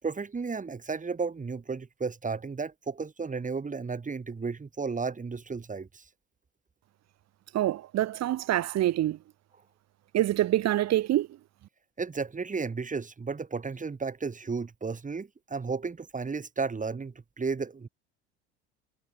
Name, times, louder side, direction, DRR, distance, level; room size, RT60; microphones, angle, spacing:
voice 1, 0.0-6.0 12.0-17.9, right 4 dB, 20° right, 7.4 m, -33 dB
voice 2, 7.5-9.2 10.1-11.3, right 13 dB, 50° right, 5.7 m, -26 dB
figure-of-eight pair, 70°, 35 cm